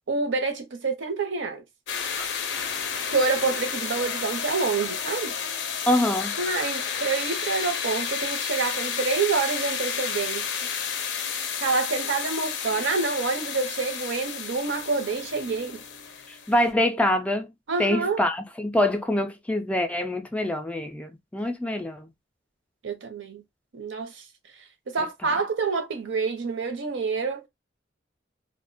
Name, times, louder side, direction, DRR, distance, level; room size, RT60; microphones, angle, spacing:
voice 1, 0.1-1.6 3.1-5.3 6.4-10.5 11.6-15.8 17.7-18.2 22.8-23.4 23.7-24.2 24.9-27.5, right 4 dB, 75° right, 0.6 m, -27 dB
sound 1, 1.9-16.7, left 7 dB, 70° left, 0.5 m, -31 dB
voice 2, 5.9-6.4 16.5-17.5 17.8-22.1, left 1 dB, 5° left, 0.3 m, -25 dB
2.3 x 2.1 x 2.5 m
head